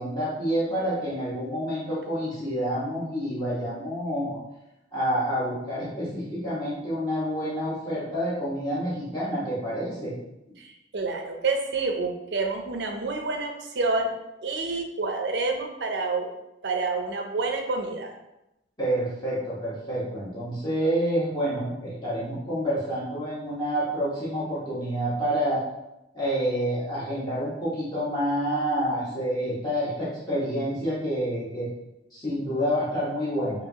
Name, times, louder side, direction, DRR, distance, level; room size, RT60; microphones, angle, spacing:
voice 1, 0.0-4.4 4.9-10.1 18.8-25.6 26.1-31.7 32.1-33.7, equal, 25° left, -10 dB, 1.3 m, -28 dB
voice 2, 10.6-14.1 14.4-16.3 16.6-18.1, right 3 dB, 70° right, 4 dB, 0.5 m, -28 dB
5.3 x 2.7 x 2.8 m, 0.91 s
head